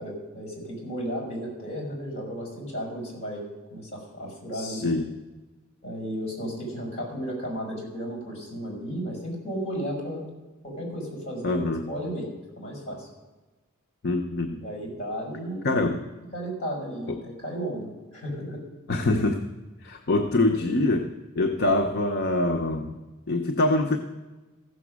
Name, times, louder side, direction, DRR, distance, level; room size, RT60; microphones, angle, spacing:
voice 1, 0.0-4.9 5.8-10.3 10.6-12.3 12.6-13.1 14.6-15.9 16.3-18.6, equal, 35° left, 0 dB, 5.0 m, -34 dB
voice 2, 4.5-5.1 11.4-11.9 14.0-14.5 15.6-16.0 17.1-17.2 18.9-19.4 19.8-23.0 23.3-24.0, left 2 dB, 50° left, 4 dB, 0.7 m, -24 dB
15.0 x 6.9 x 6.2 m, 1.2 s
head